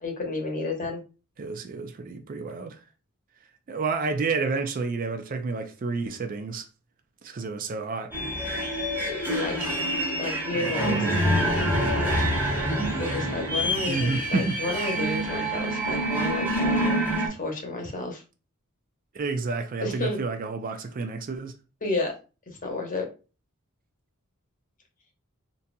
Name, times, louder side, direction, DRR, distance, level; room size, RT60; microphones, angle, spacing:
voice 1, 0.0-1.0 9.3-9.7 10.1-12.1 12.5-12.7 13.0-16.9 17.2-18.2 19.8-20.2 21.8-22.1 22.5-23.1, left 2 dB, 40° left, 0.9 m, -31 dB
voice 2, 1.4-2.8 3.7-6.6 7.2-8.1 13.8-14.9 19.1-21.5, right 4 dB, 40° right, 0.4 m, -30 dB
sound 1, 8.1-17.3, right 1 dB, 10° right, 1.1 m, -26 dB
3.9 x 2.6 x 2.2 m
head